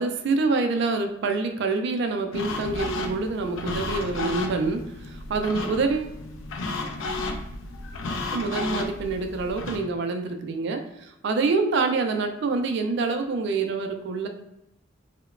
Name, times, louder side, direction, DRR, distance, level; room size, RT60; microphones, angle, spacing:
voice 1, 0.0-6.1 8.3-14.3, right 3 dB, 60° right, 6 dB, 0.3 m, -26 dB
sound 1, 2.3-9.8, left 2 dB, 80° left, 0.4 m, -33 dB
2.9 x 2.1 x 2.3 m, 0.86 s
head